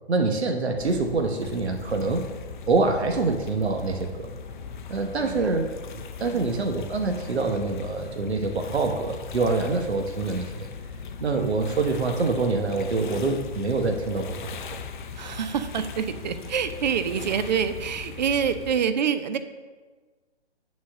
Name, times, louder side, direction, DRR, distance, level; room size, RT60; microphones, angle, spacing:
voice 1, 0.1-2.2 2.7-4.3 4.9-5.7 6.2-10.7 11.2-14.6, right 3 dB, 75° right, 4 dB, 1.0 m, -25 dB
sound 1, 0.8-18.7, left 5 dB, 45° left, 0.7 m, -39 dB
voice 2, 5.2-5.5 6.3-6.6 15.1-19.4, right 7 dB, 40° right, 11 dB, 0.6 m, -27 dB
9.3 x 4.2 x 6.3 m, 1.4 s
figure-of-eight pair, 140°, 33 cm